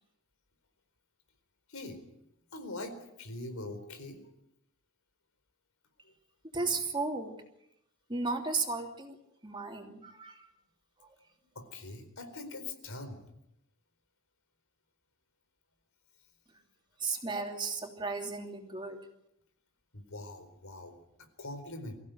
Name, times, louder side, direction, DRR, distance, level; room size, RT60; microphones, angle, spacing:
voice 1, 2.5-4.2 11.5-13.2 19.9-20.9 21.4-22.0, left 2 dB, 80° left, 8 dB, 4.4 m, -42 dB
voice 2, 6.5-7.3 8.1-9.2 9.4-10.4 17.0-19.0, right 3 dB, 20° right, 3 dB, 3.0 m, -34 dB
24.5 x 15.5 x 9.4 m, 0.81 s
head